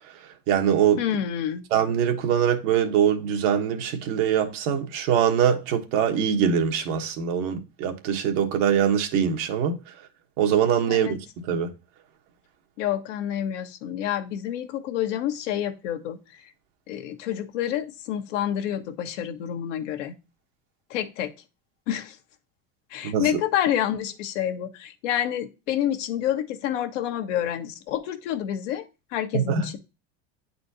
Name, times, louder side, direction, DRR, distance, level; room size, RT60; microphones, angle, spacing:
voice 1, 0.5-1.0 1.7-9.8 10.4-11.7 23.0-23.3 29.3-29.8, right 8 dB, 75° right, 1.3 m, -23 dB
voice 2, 1.0-1.6 10.9-11.1 12.8-16.2 16.9-20.1 20.9-21.3 21.9-22.2 22.9-28.9 29.1-29.8, left 10 dB, 85° left, 1.1 m, -28 dB
9.1 x 4.2 x 2.7 m
supercardioid pair, 110°, 36 cm